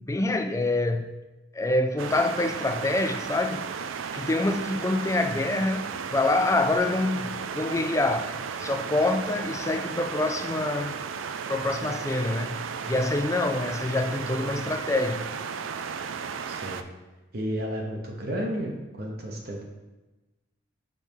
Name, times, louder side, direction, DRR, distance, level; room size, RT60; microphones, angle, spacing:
voice 1, 0.1-1.1 1.5-3.6 4.1-11.0 11.5-15.3, left 2 dB, 15° left, 8 dB, 0.3 m, -26 dB
sound 1, 2.0-16.8, right 6 dB, 80° right, 0.4 m, -34 dB
voice 2, 16.5-16.8 17.3-18.7 19.0-19.6, equal, 50° right, -1 dB, 0.9 m, -32 dB
5.6 x 5.4 x 4.6 m, 1.1 s
head